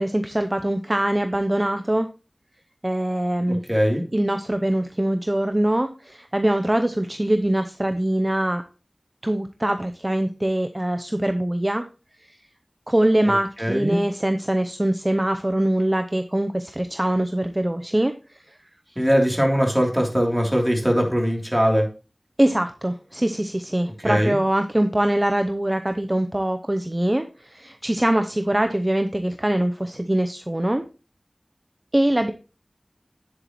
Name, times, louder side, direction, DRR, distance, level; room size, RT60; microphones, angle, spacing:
voice 1, 0.0-2.1 2.8-3.6 4.1-8.6 9.2-11.8 12.3-12.4 12.9-18.6 22.4-30.8 31.9-32.3, right 1 dB, 25° right, 7 dB, 0.7 m, -23 dB
voice 2, 3.5-4.0 13.3-14.0 18.9-21.9 24.0-24.4, equal, 5° right, 0 dB, 3.2 m, -21 dB
10.0 x 8.0 x 3.1 m, 0.33 s
wide cardioid pair, 50°, 0 cm